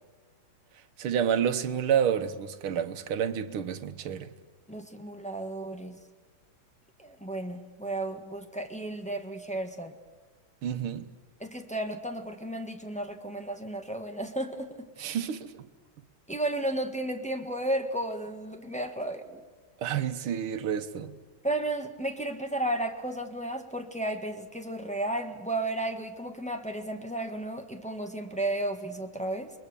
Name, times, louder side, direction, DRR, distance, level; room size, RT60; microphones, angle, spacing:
voice 1, 1.0-4.3 10.6-11.1 15.0-15.6 19.8-21.2, right 8 dB, 85° right, 2.0 m, -29 dB
voice 2, 4.7-6.0 7.0-9.9 11.4-15.1 16.3-19.4 21.4-29.5, right 1 dB, 5° left, 1.4 m, -33 dB
29.5 x 22.0 x 6.9 m
omnidirectional pair, 2.3 m